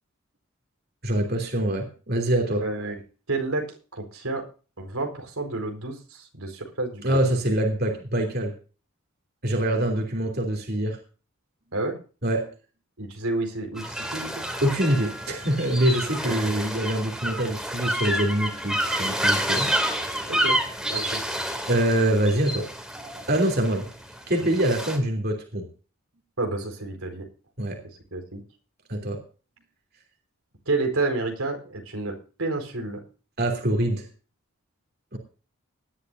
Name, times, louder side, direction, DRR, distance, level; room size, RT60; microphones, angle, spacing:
voice 1, 1.0-2.6 7.0-8.5 9.4-11.0 12.2-12.5 14.6-19.7 21.7-22.7 23.3-23.8 24.3-25.7 27.6-27.8 28.9-29.2 33.4-34.1 35.1-35.2, right 1 dB, 45° right, 3 dB, 3.1 m, -24 dB
voice 2, 2.6-3.0 3.3-4.4 4.8-7.2 11.7-12.0 13.0-14.4 16.2-16.5 20.3-20.6 20.9-21.2 24.4-24.5 26.4-27.3 28.1-28.4 30.7-33.0, right 2 dB, 85° right, 3 dB, 4.6 m, -30 dB
sound 1, 13.8-25.0, equal, 5° right, 2.6 m, -29 dB
19.0 x 12.5 x 2.7 m, 0.36 s
head